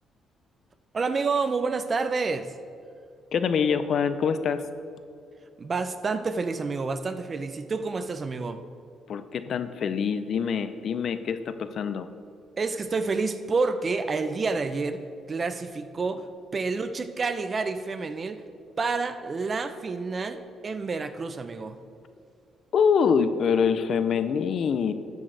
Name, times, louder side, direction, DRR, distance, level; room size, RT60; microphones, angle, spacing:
voice 1, 0.9-2.5 5.6-8.6 12.6-15.0 15.3-16.2 16.5-18.4 18.8-21.8, right 4 dB, 40° right, 11 dB, 0.6 m, -29 dB
voice 2, 3.3-4.7 9.1-12.1 22.7-24.9, left 6 dB, 60° left, 11 dB, 0.5 m, -25 dB
13.0 x 7.6 x 3.4 m, 2.4 s
cardioid pair, 90°, 0 cm